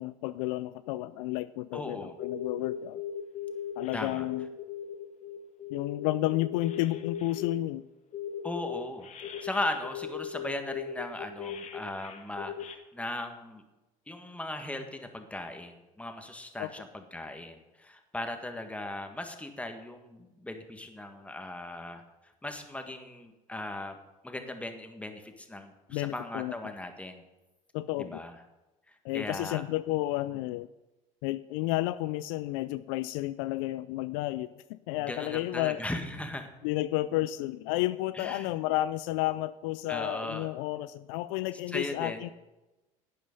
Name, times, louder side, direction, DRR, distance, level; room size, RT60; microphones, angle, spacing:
voice 1, 0.0-3.0 3.8-4.5 5.7-7.8 16.6-16.7 25.9-26.5 27.7-28.2 29.0-30.7 31.2-34.5 34.9-35.8 36.6-42.3, left 16 dB, 65° left, 14 dB, 0.4 m, -31 dB
voice 2, 1.7-2.1 3.9-4.3 8.4-9.1 9.4-13.6 14.1-24.0 24.2-27.2 28.0-28.4 28.9-29.6 35.0-36.5 38.1-38.5 39.9-40.5 41.7-42.2, left 1 dB, 5° left, 6 dB, 1.7 m, -38 dB
sound 1, 2.0-7.6 8.1-12.8, left 8 dB, 45° left, 1.6 m, -38 dB
11.5 x 9.2 x 5.4 m, 1.0 s
hypercardioid pair, 75°, 17 cm